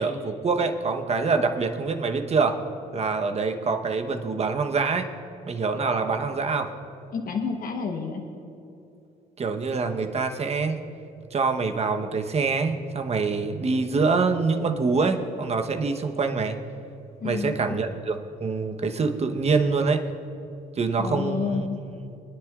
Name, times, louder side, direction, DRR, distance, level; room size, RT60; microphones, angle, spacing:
voice 1, 0.0-2.6 2.9-5.1 5.5-6.7 9.4-10.8 11.3-16.6 17.2-20.0 20.8-21.7, right 4 dB, 40° right, 6 dB, 1.0 m, -25 dB
voice 2, 7.1-8.2 17.2-17.8 21.0-21.8, left 5 dB, 55° left, 3 dB, 1.1 m, -29 dB
24.5 x 10.0 x 2.5 m, 2.8 s
cardioid pair, 85°, 17 cm